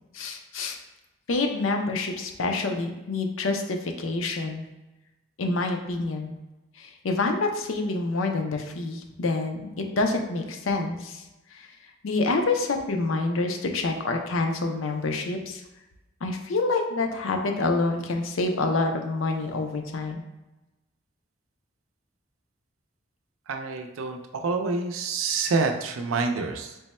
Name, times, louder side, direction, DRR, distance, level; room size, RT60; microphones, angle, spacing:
voice 1, 0.1-0.8 1.3-4.7 5.4-6.4 6.8-9.7 9.9-11.2 11.5-11.7 12.0-15.6 16.2-20.2, left 3 dB, 80° left, 4 dB, 0.5 m, -27 dB
voice 2, 23.5-26.8, right 4 dB, 85° right, 5 dB, 0.4 m, -27 dB
3.3 x 2.1 x 4.1 m, 1.0 s
head